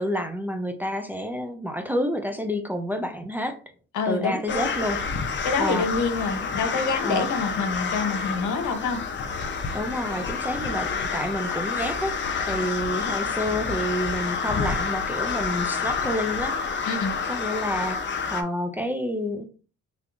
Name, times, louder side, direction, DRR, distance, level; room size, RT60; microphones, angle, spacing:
voice 1, 0.0-3.6 4.1-5.0 5.6-5.9 7.0-7.3 9.7-12.2 12.5-16.6 17.3-18.0 18.3-19.4, equal, 5° right, 0.5 m, -29 dB
voice 2, 3.9-4.7 5.4-9.0 12.5-12.7 16.8-17.1, left 4 dB, 75° left, 0.9 m, -27 dB
sound 1, 4.5-18.4, left 5 dB, 40° left, 0.7 m, -29 dB
3.5 x 3.4 x 2.5 m
cardioid pair, 90°, 30 cm